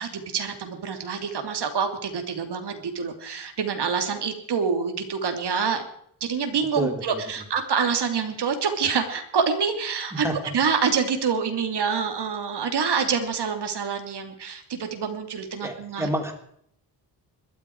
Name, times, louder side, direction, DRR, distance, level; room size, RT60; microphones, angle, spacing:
voice 1, 0.0-5.8 6.2-10.3 10.5-16.1, right 6 dB, 65° right, 6 dB, 3.1 m, -26 dB
voice 2, 6.7-7.2 10.1-10.4 15.6-16.3, right 1 dB, 5° right, 4 dB, 3.2 m, -29 dB
21.5 x 13.5 x 4.8 m, 0.67 s
wide cardioid pair, 135°, 43 cm